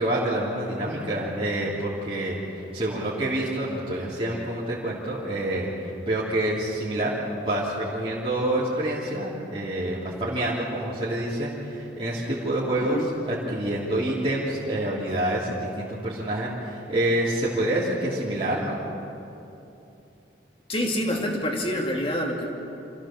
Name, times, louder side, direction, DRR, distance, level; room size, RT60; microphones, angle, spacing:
voice 1, 0.0-18.8, right 1 dB, 30° right, -8 dB, 3.2 m, -27 dB
voice 2, 12.8-13.1 20.7-22.5, equal, 30° left, 0 dB, 2.6 m, -27 dB
27.0 x 15.5 x 7.4 m, 2.9 s
head